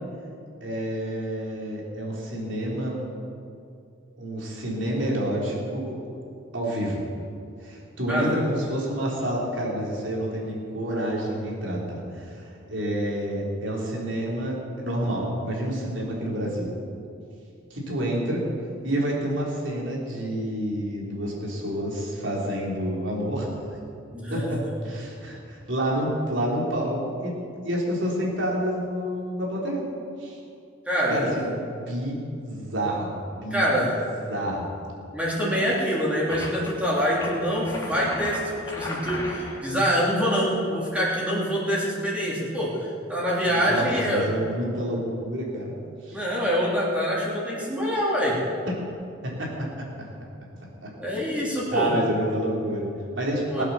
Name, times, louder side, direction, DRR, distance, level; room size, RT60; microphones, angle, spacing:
voice 1, 0.6-3.0 4.2-6.0 6.5-7.0 7.6-16.8 17.7-18.5 18.8-23.5 24.3-27.3 27.6-29.8 30.2-30.4 31.1-33.7 34.3-34.7 43.5-45.7 46.0-46.2 48.7-48.8 49.2-49.9 50.8-50.9 51.7-53.6, right 1 dB, 65° right, -3 dB, 3.9 m, -28 dB
voice 2, 8.1-8.5 24.1-24.7 30.9-31.4 33.5-34.0 35.1-44.3 46.1-48.4 51.0-51.9 53.5-53.6, equal, 5° right, -6 dB, 3.1 m, -25 dB
sound 1, 36.3-36.7 37.1-39.6, left 1 dB, 15° left, 2.7 m, -35 dB
20.0 x 8.3 x 7.2 m, 2.5 s
head